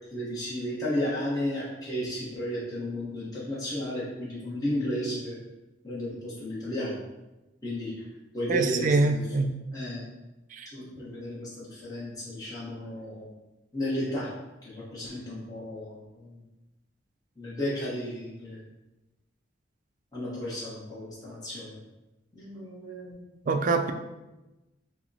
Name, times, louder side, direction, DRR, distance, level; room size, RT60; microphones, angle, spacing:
voice 1, 0.0-5.4 5.8-7.0 7.6-8.0 8.3-9.3 9.7-10.0 10.7-13.3 13.7-14.3 14.6-16.4 17.4-18.6 20.1-21.8 22.3-23.2, left 1 dB, 20° left, -8 dB, 0.9 m, -33 dB
voice 2, 8.5-9.5 10.5-10.7 23.5-23.9, right 3 dB, 45° right, 6 dB, 0.3 m, -24 dB
5.7 x 2.0 x 2.6 m, 1.0 s
head